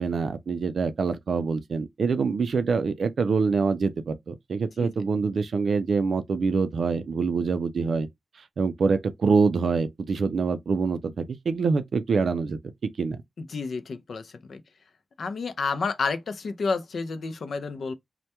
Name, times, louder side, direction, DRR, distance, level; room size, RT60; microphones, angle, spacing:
voice 1, 0.0-8.1 8.6-13.2, right 4 dB, 75° right, 0.3 m, -25 dB
voice 2, 13.4-14.6 15.2-17.9, left 4 dB, 75° left, 0.4 m, -30 dB
2.2 x 2.1 x 2.8 m
wide cardioid pair, 175°, 0 cm